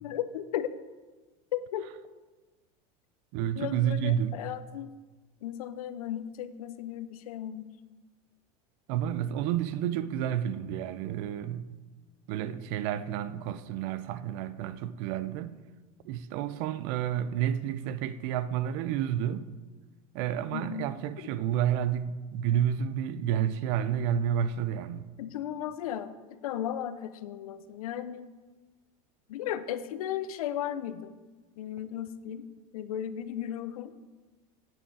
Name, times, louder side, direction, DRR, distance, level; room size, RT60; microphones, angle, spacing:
voice 1, 0.0-0.7 1.5-1.9 3.6-4.9 5.4-7.7 20.5-20.9 25.2-28.3 29.3-31.1 31.6-32.5 32.7-34.0, left 10 dB, 90° left, 0.7 m, -35 dB
voice 2, 3.3-4.4 8.9-11.8 12.3-15.6 16.0-19.5 20.1-25.1, right 10 dB, 65° right, 0.6 m, -30 dB
9.1 x 8.9 x 4.8 m
supercardioid pair, 105°, 18 cm